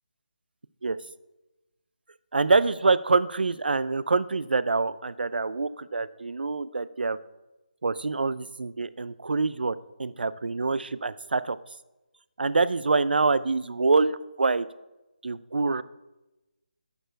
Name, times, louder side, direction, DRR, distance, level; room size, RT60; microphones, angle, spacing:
voice 1, 2.3-7.2 7.8-11.6 12.4-14.7 15.2-15.8, right 3 dB, 85° right, 16 dB, 0.4 m, -25 dB
11.5 x 4.5 x 4.5 m, 1.0 s
figure-of-eight pair, 165°, 5 cm